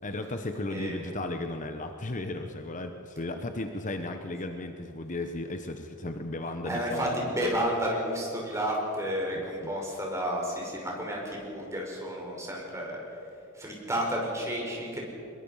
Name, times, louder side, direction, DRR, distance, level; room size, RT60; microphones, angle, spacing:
voice 1, 0.0-7.5 9.3-9.7, left 2 dB, 35° left, 6 dB, 1.0 m, -35 dB
voice 2, 0.7-1.1 6.7-13.3 13.5-15.0, equal, 15° right, -1 dB, 5.0 m, -31 dB
23.5 x 22.5 x 5.6 m, 2.8 s
head